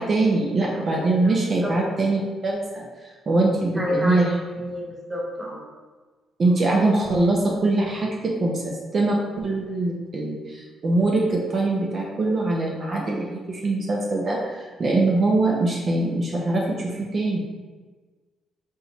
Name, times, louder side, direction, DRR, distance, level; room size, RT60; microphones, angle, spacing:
voice 1, 0.0-2.9 3.3-4.3 6.4-17.4, right 2 dB, 45° right, -2 dB, 0.7 m, -23 dB
voice 2, 3.8-4.2 4.5-5.6, equal, 15° right, -2 dB, 0.9 m, -29 dB
4.2 x 3.7 x 3.0 m, 1.4 s
cardioid pair, 90°, 0 cm